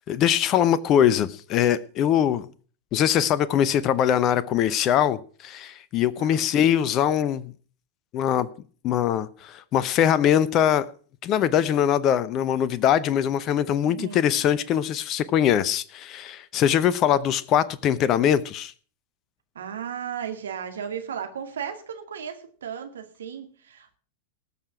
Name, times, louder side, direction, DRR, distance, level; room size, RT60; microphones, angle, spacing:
voice 1, 0.0-2.5 2.9-7.5 8.1-8.5 8.8-10.9 11.2-18.7, left 10 dB, 35° left, 0.8 m, -22 dB
voice 2, 6.2-6.7 13.9-14.2 19.6-24.0, right 8 dB, 65° right, 2.1 m, -35 dB
19.5 x 6.8 x 6.0 m
figure-of-eight pair, 90°, 0 cm